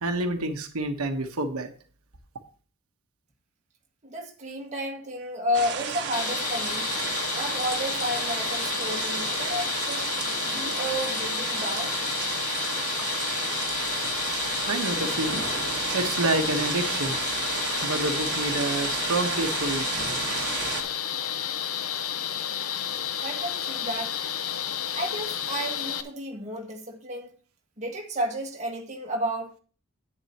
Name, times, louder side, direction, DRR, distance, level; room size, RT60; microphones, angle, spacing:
voice 1, 0.0-1.7 14.2-17.2 17.8-20.7, right 2 dB, 80° right, 1.2 m, -29 dB
voice 2, 4.0-6.9 7.3-10.1 10.5-12.0 23.2-24.2 25.0-27.3 27.8-29.5, equal, 35° right, 1.8 m, -32 dB
sound 1, 5.5-20.8, right 6 dB, 50° right, 1.4 m, -32 dB
sound 2, 6.1-26.0, left 9 dB, 70° left, 0.7 m, -31 dB
10.5 x 9.0 x 2.9 m
head